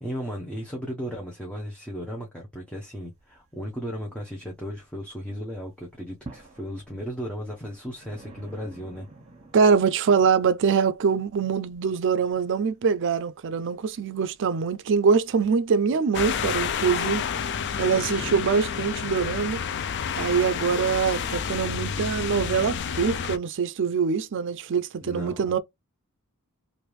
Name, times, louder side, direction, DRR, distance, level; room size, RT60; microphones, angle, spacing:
voice 1, 0.0-9.1 18.0-18.3 25.0-25.6, equal, 5° left, 0.8 m, -35 dB
sound 1, 3.0-5.2 5.5-20.5, right 2 dB, 30° right, 1.3 m, -51 dB
voice 2, 9.5-17.2 17.8-19.6 20.2-25.6, right 5 dB, 55° right, 0.4 m, -24 dB
sound 2, 16.1-23.4, left 7 dB, 50° left, 0.4 m, -29 dB
3.3 x 2.6 x 3.1 m
head